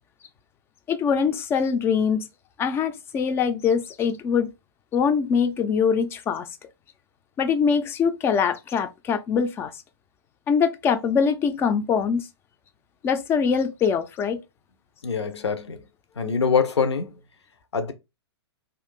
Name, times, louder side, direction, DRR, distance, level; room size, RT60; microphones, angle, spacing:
voice 1, 0.9-2.3 2.6-4.5 4.9-6.5 7.4-9.7 10.5-12.3 13.0-14.4, left 6 dB, 15° left, 0.3 m, -23 dB
voice 2, 15.0-15.8 16.2-17.2 17.7-17.9, left 6 dB, 80° left, 0.6 m, -24 dB
2.5 x 2.5 x 3.5 m
figure-of-eight pair, 115°, 14 cm